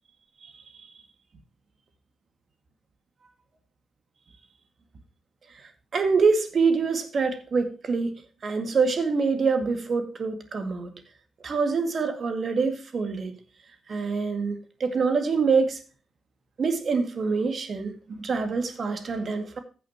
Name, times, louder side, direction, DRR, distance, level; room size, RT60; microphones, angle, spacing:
voice 1, 0.4-0.9 5.9-10.9 11.4-13.3 13.9-15.8 16.6-19.6, right 4 dB, 55° right, 2.1 m, -25 dB
15.0 x 6.4 x 2.9 m
hypercardioid pair, 40°, 0 cm